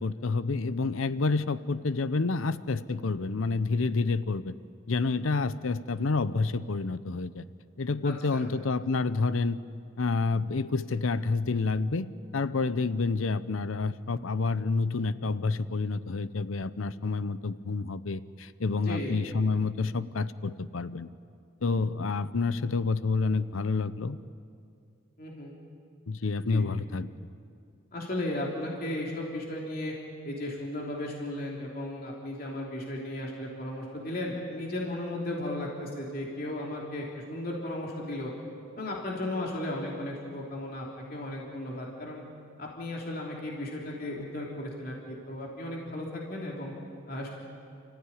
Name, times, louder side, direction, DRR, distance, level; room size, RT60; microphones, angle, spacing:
voice 1, 0.0-4.6 4.9-7.5 7.8-9.6 10.0-12.1 12.3-21.1 21.6-24.2 26.1-27.1, left 3 dB, 80° left, 15 dB, 0.7 m, -29 dB
voice 2, 8.0-8.5 18.8-19.1 25.2-25.6 26.5-26.7 27.9-29.9 30.2-38.3 38.8-42.2 42.6-46.7 47.1-47.3, left 1 dB, 45° left, -2 dB, 3.2 m, -35 dB
30.0 x 15.0 x 9.9 m, 2.4 s
head